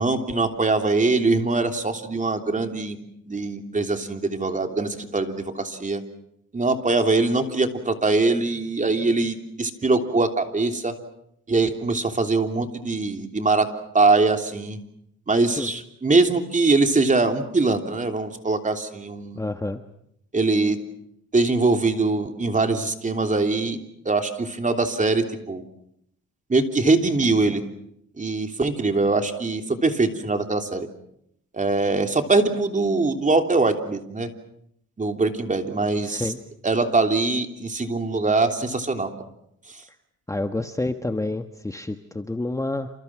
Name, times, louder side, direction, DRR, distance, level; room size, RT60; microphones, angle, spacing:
voice 1, 0.0-3.0 3.3-6.0 6.5-10.9 11.5-13.7 13.9-14.8 15.3-19.4 20.3-20.8 21.3-23.8 24.0-25.6 26.5-27.6 28.2-30.9 31.5-34.3 35.0-36.3 36.6-39.1 39.7-39.8, right 3 dB, 25° right, 6 dB, 3.2 m, -22 dB
voice 2, 19.3-19.8 36.0-36.4 40.3-42.9, left 2 dB, 10° left, 7 dB, 1.3 m, -28 dB
29.0 x 28.0 x 6.1 m, 0.74 s
cardioid pair, 90°, 30 cm